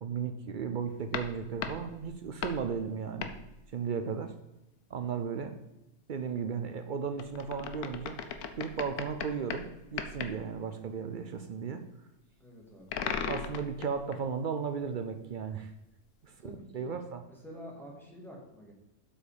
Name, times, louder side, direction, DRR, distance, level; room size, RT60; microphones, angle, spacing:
voice 1, 0.0-3.3 3.7-4.3 4.9-5.6 6.1-8.2 8.6-11.8 13.0-15.7 16.2-16.3 16.7-17.2, right 6 dB, 90° right, 7 dB, 0.4 m, -35 dB
sound 1, 1.1-2.7 3.2-3.5 7.2-9.7 10.0-10.4 12.9-14.2 15.6-15.7, left 7 dB, 75° left, 1.2 m, -37 dB
voice 2, 12.4-13.0 16.4-16.9 17.3-18.7, equal, ahead, -3 dB, 2.1 m, -48 dB
7.8 x 6.5 x 5.0 m, 0.95 s
omnidirectional pair, 1.6 m